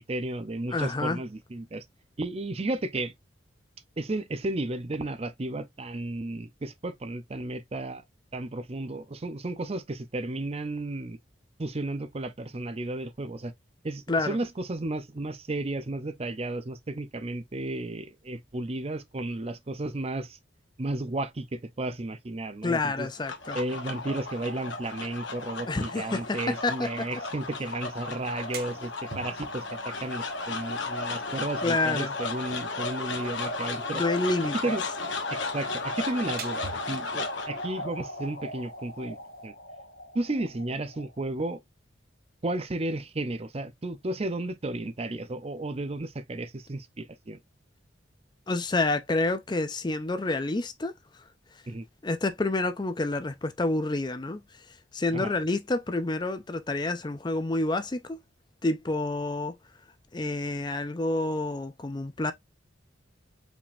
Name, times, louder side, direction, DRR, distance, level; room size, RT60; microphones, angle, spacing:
voice 1, 0.0-1.8 2.2-3.1 4.0-8.0 8.3-11.2 11.6-13.5 13.8-20.4 20.8-23.1 23.5-34.0 34.6-34.8 35.3-39.2 39.4-39.5 40.1-41.6 42.4-47.4 51.7-51.9 55.1-55.3, right 2 dB, 30° right, 0.5 m, -33 dB
voice 2, 0.7-1.2 14.1-14.4 22.6-23.6 25.7-27.1 31.6-32.1 33.9-34.6 48.5-50.9 52.0-54.4 54.9-58.2 58.6-59.5 60.1-62.3, left 2 dB, 25° left, 0.5 m, -28 dB
sound 1, 22.9-41.3, left 3 dB, 75° left, 1.4 m, -35 dB
sound 2, 28.2-39.5, right 5 dB, 50° right, 1.0 m, -49 dB
5.0 x 3.5 x 2.5 m
head